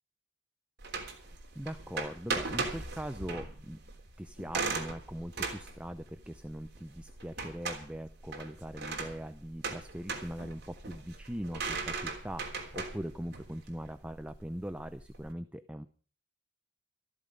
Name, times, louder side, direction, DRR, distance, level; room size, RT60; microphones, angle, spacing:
sound 1, 0.8-15.3, right 4 dB, 50° right, 3.4 m, -39 dB
voice 1, 1.5-3.8 4.2-15.9, equal, 5° right, 9 dB, 0.6 m, -41 dB
14.5 x 13.5 x 5.3 m, 0.40 s
head